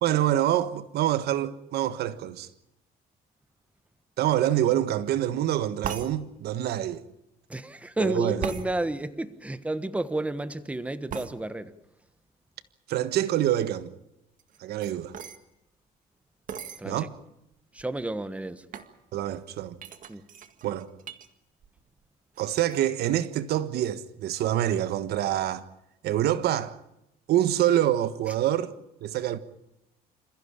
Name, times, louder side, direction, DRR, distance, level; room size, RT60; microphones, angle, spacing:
voice 1, 0.0-2.5 4.2-7.0 8.0-8.4 12.9-13.9 14.6-15.1 16.8-17.1 19.1-19.8 20.6-20.9 22.4-25.7 26.0-26.8 27.3-28.7 29.0-29.4, right 12 dB, 75° right, 1.4 m, -26 dB
sound 1, 5.8-6.1 8.4-8.7 11.1-11.3 14.4-15.4 16.5-16.8 17.5-17.6 17.8-18.2 18.7-18.9 19.8-21.3 21.6-22.0 22.3-22.8, right 8 dB, 50° right, 2.0 m, -37 dB
voice 2, 7.5-11.7 16.8-17.1 17.7-18.6 20.1-20.2, right 1 dB, 10° right, 1.3 m, -31 dB
28.0 x 15.5 x 8.7 m
cardioid pair, 110°, 17 cm